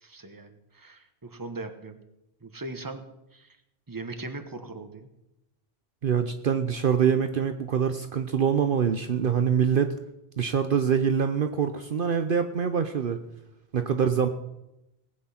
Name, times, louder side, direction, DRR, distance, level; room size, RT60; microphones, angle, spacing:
voice 1, 0.0-2.0 2.4-3.0 3.3-3.6 3.9-5.1, right 2 dB, 20° right, 8 dB, 1.1 m, -39 dB
voice 2, 6.0-10.0 10.4-13.2 13.7-14.3, right 7 dB, 55° right, 8 dB, 0.9 m, -24 dB
19.0 x 8.5 x 5.8 m, 0.90 s
omnidirectional pair, 1.1 m